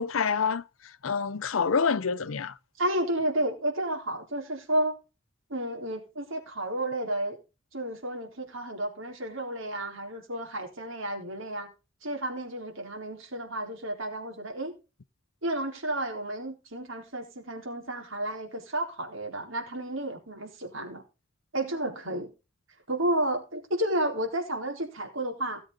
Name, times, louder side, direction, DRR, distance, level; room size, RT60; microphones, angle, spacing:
voice 1, 0.0-2.6, left 5 dB, 80° left, 0.7 m, -27 dB
voice 2, 2.8-5.0 5.5-7.4 7.7-11.7 12.0-14.7 15.4-21.0 21.5-22.3 22.9-25.6, right 1 dB, 75° right, 4.0 m, -31 dB
17.0 x 7.7 x 3.9 m
head